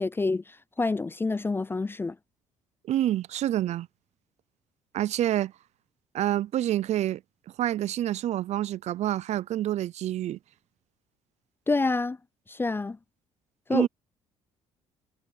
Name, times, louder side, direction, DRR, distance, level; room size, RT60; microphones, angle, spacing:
voice 1, 0.0-2.2 11.7-12.2 12.5-13.0 13.7-13.9, left 3 dB, 15° left, 0.4 m, -27 dB
voice 2, 2.9-3.9 4.9-5.5 6.1-7.2 7.6-10.4 13.7-13.9, right 12 dB, 60° right, 0.6 m, -27 dB
supercardioid pair, 75°, 13 cm